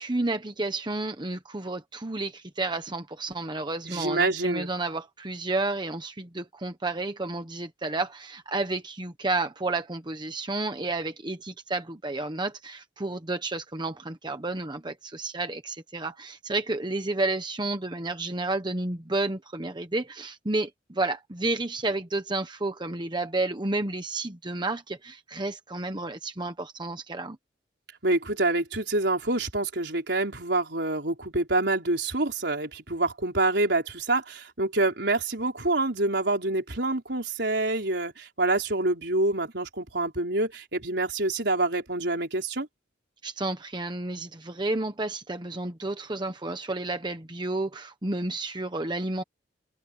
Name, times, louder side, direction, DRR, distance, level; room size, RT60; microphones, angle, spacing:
voice 1, 0.0-27.4 43.2-49.2, right 2 dB, 25° right, 1.1 m, -31 dB
voice 2, 3.8-4.7 28.0-42.7, right 2 dB, 65° right, 4.9 m, -26 dB
open air
head